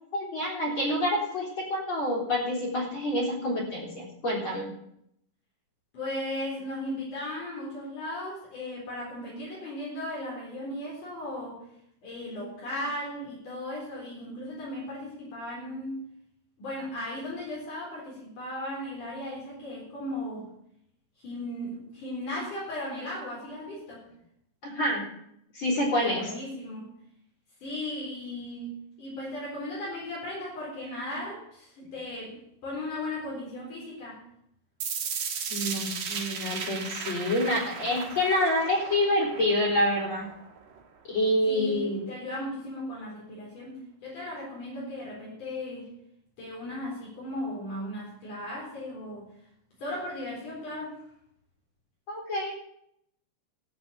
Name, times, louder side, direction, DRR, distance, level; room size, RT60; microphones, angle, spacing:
voice 1, 0.1-4.7 24.6-25.0 25.5-26.3 35.5-40.3 41.1-42.1 52.1-52.5, left 1 dB, 40° left, -3 dB, 4.5 m, -27 dB
voice 2, 5.9-11.6 12.0-16.0 16.6-20.5 21.2-24.0 25.7-26.9 27.6-34.2 41.5-45.9 46.4-49.3 49.8-51.0, left 1 dB, 65° left, -5 dB, 5.7 m, -36 dB
sound 1, 34.8-40.8, right 6 dB, 80° right, 3.2 m, -36 dB
15.0 x 6.2 x 8.2 m, 0.74 s
omnidirectional pair, 3.8 m